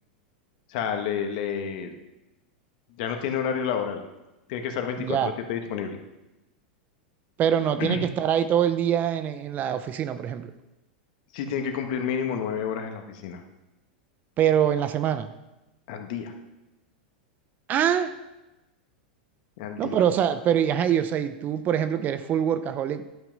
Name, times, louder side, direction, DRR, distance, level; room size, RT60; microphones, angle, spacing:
voice 1, 0.7-1.9 3.0-4.0 4.5-5.2 5.5-6.0 7.8-8.0 11.3-13.4 15.9-16.3 19.6-20.0, left 7 dB, 60° left, 5 dB, 1.4 m, -29 dB
voice 2, 5.0-5.3 7.4-10.5 14.4-15.3 17.7-18.2 19.8-23.0, right 9 dB, 35° right, 11 dB, 0.6 m, -24 dB
11.5 x 6.0 x 5.3 m, 0.98 s
hypercardioid pair, 110°, 5 cm